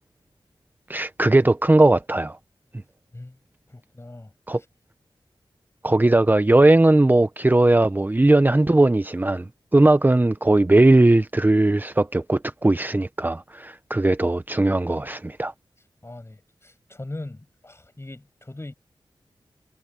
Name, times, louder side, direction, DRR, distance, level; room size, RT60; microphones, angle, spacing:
voice 1, 0.9-2.4 4.5-4.6 5.8-15.5, right 2 dB, 20° right, 0.7 m, -18 dB
voice 2, 3.7-4.3 16.0-18.7, left 2 dB, 30° left, 7.2 m, -40 dB
cardioid pair, 55°, 9 cm